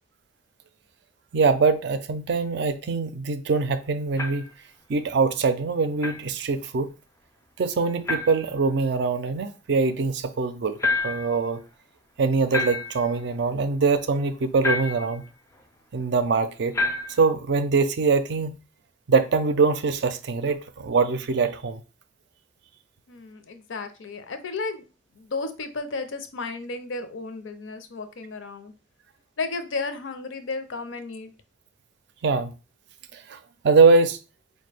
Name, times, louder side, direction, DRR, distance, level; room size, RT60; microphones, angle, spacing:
voice 1, 1.3-4.5 4.9-6.9 7.6-10.8 11.0-11.6 12.2-15.2 15.9-16.8 17.2-18.6 19.1-21.8 32.2-32.5 33.1-33.4 33.6-34.2, right 4 dB, 60° right, 0.4 m, -23 dB
sound 1, 4.2-4.5 6.0-6.2 8.1-8.5 10.8-11.4 12.5-13.1 14.6-15.2 16.7-17.3, left 2 dB, 15° left, 0.3 m, -28 dB
voice 2, 23.1-24.8 25.1-28.7 29.4-31.3, left 3 dB, 85° left, 0.6 m, -33 dB
4.4 x 2.2 x 3.3 m
head